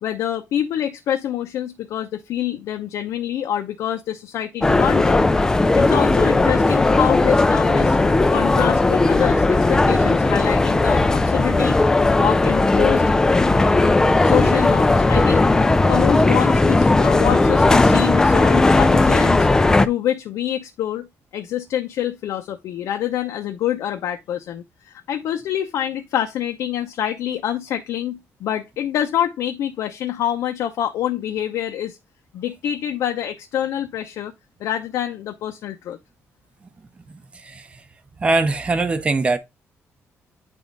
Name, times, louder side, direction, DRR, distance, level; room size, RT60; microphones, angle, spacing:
voice 1, 0.0-5.2 5.7-8.0 8.3-11.8 12.2-13.0 14.2-15.5 15.9-19.5 19.8-21.1 21.3-32.0 32.3-34.3 34.6-36.0, left 10 dB, 80° left, 0.7 m, -26 dB
sound 1, 4.6-19.9, left 2 dB, 10° left, 0.3 m, -16 dB
voice 2, 37.1-37.8 38.2-39.4, right 3 dB, 20° right, 0.7 m, -22 dB
9.2 x 3.5 x 3.9 m
cardioid pair, 180°, 5 cm